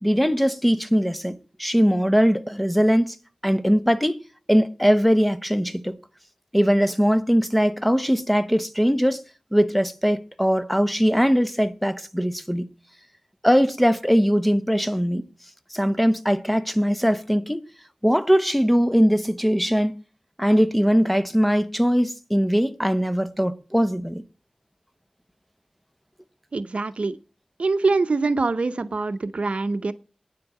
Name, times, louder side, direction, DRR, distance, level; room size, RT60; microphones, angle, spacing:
voice 1, 0.0-3.2 3.4-4.2 4.5-6.0 6.5-9.2 9.5-12.7 13.4-15.2 15.7-17.6 18.0-20.0 20.4-24.2, equal, 5° left, 0.8 m, -21 dB
voice 2, 26.5-27.2 27.6-29.9, right 3 dB, 70° right, 0.7 m, -24 dB
9.4 x 7.5 x 8.6 m
wide cardioid pair, 75°, 2 cm